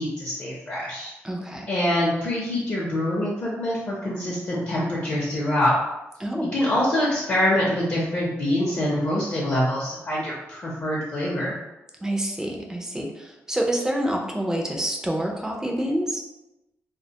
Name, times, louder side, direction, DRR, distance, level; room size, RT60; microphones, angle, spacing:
voice 1, 0.0-1.1 1.7-5.8 6.5-11.5, left 1 dB, 40° left, -6 dB, 0.6 m, -25 dB
voice 2, 1.2-1.7 6.2-6.5 12.0-16.2, right 1 dB, 10° right, 0 dB, 0.3 m, -27 dB
2.4 x 2.1 x 2.7 m, 0.98 s
wide cardioid pair, 135°, 5 cm